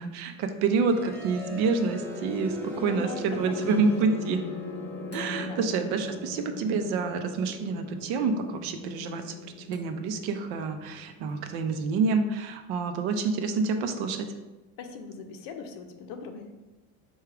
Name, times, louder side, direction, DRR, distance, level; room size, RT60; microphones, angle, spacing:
voice 1, 0.0-4.4 5.1-14.3, right 4 dB, 65° right, 7 dB, 0.6 m, -28 dB
sound 1, 0.8-12.6, left 2 dB, 5° left, 0.5 m, -39 dB
voice 2, 2.7-3.7 5.3-5.6 14.8-16.5, left 5 dB, 55° left, 6 dB, 0.6 m, -41 dB
sound 2, 3.7-3.8 5.1-7.2 9.7-10.2 11.3-11.4, left 2 dB, 25° left, 1.0 m, -47 dB
4.6 x 2.3 x 4.7 m, 1.1 s
cardioid pair, 140°, 42 cm